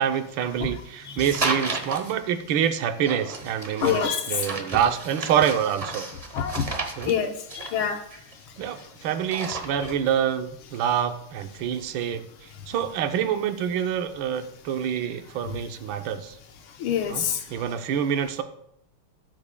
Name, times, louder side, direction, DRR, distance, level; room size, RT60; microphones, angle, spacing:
voice 1, 0.0-6.1 7.0-7.2 8.6-16.4 17.1-18.4, right 9 dB, 70° right, 8 dB, 1.4 m, -26 dB
sound 1, 1.2-2.1 3.0-8.8 9.1-10.1, right 3 dB, 45° right, 0.4 m, -33 dB
voice 2, 3.8-4.2 6.3-6.7 7.1-8.0 16.8-17.4, left 7 dB, 75° left, 6 dB, 1.7 m, -26 dB
17.5 x 8.6 x 2.2 m, 0.72 s
omnidirectional pair, 2.4 m